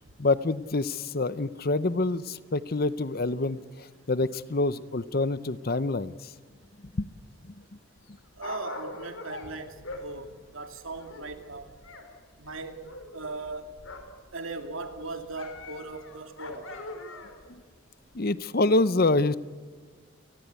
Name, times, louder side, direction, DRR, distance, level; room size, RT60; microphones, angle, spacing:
voice 1, 0.2-3.6 4.1-6.1 7.0-7.1 17.5-17.6 18.1-19.4, left 2 dB, 45° left, 15 dB, 0.7 m, -26 dB
Dog, 8.0-12.1 12.3-14.2 14.6-17.5 18.1-18.2, left 2 dB, 70° left, 4.3 m, -43 dB
voice 2, 8.4-11.7 12.4-12.8 13.1-13.7 14.3-16.6, right 3 dB, 70° right, 6 dB, 2.6 m, -38 dB
30.0 x 19.0 x 8.2 m, 1.5 s
head